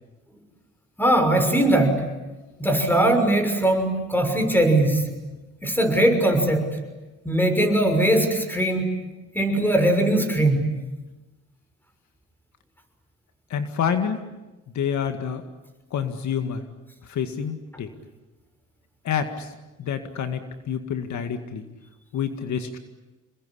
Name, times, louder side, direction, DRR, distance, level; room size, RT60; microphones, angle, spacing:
voice 1, 1.0-2.0 2.6-5.1 5.6-6.7 7.2-8.9 9.3-10.7, right 1 dB, 5° left, 6 dB, 6.2 m, -20 dB
voice 2, 13.5-14.2 14.8-15.4 15.9-16.6 17.1-17.9 19.0-19.5 19.8-20.4 20.7-21.6 22.1-22.8, left 7 dB, 70° left, 7 dB, 2.1 m, -27 dB
27.5 x 21.5 x 10.0 m, 1.1 s
cardioid pair, 90°, 30 cm